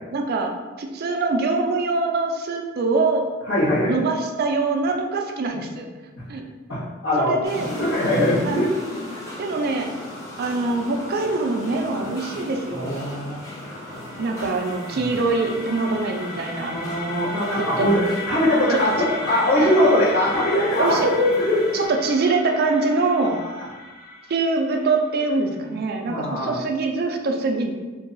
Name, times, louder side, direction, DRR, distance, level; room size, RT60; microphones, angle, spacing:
voice 1, 0.1-0.5 0.8-3.2 3.9-5.9 6.3-6.4 7.2-7.7 8.4-8.6 9.4-9.9 10.4-12.9 14.2-16.7 17.6-17.9 18.7-18.8 20.8-21.1 21.7-23.4 24.3-27.7, right 3 dB, 50° right, 3 dB, 0.4 m, -24 dB
voice 2, 3.4-3.9 6.2-6.3 6.7-8.7 9.1-9.2 12.7-14.0 14.4-14.5 14.9-15.0 16.7-21.6 26.1-26.6, left 1 dB, 70° left, -13 dB, 1.2 m, -22 dB
sound 1, 7.4-21.9, left 1 dB, 15° left, 0.8 m, -38 dB
sound 2, 13.6-25.5, left 2 dB, 45° left, 0.5 m, -35 dB
2.6 x 2.3 x 3.9 m, 1.2 s
head